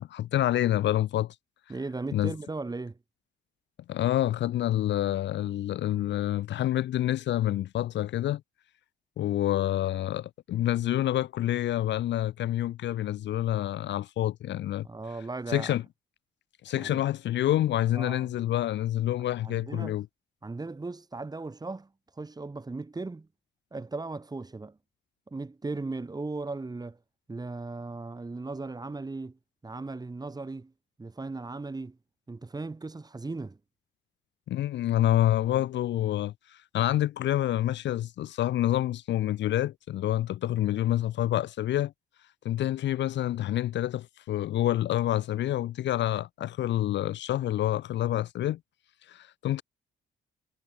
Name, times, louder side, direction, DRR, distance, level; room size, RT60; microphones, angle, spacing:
voice 1, 0.0-1.3 2.1-2.3 3.9-8.4 9.2-14.9 15.5-15.8 16.6-20.1 34.5-36.3 36.7-41.9 42.4-48.6 49.1-49.6, left 13 dB, 65° left, 0.6 m, -27 dB
voice 2, 1.7-3.0 14.8-15.8 16.7-17.0 17.9-18.3 19.4-20.0 20.4-21.9 22.2-23.3 23.7-24.8 25.3-27.0 27.3-29.4 29.6-30.7 31.0-32.0 32.3-33.6, right 3 dB, 20° right, 1.9 m, -37 dB
cardioid pair, 90°, 20 cm